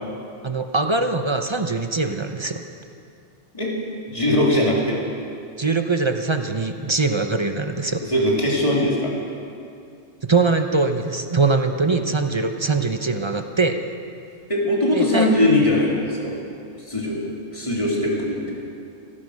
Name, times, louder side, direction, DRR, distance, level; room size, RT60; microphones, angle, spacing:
voice 1, 0.4-2.6 5.6-8.0 10.2-13.8 14.9-15.3, right 3 dB, 30° right, 6 dB, 0.6 m, -22 dB
voice 2, 4.1-5.0 8.1-9.1 14.5-16.3 16.9-17.2 17.5-18.6, left 1 dB, 25° left, -4 dB, 3.0 m, -20 dB
15.5 x 14.5 x 6.4 m, 2.5 s
omnidirectional pair, 1.3 m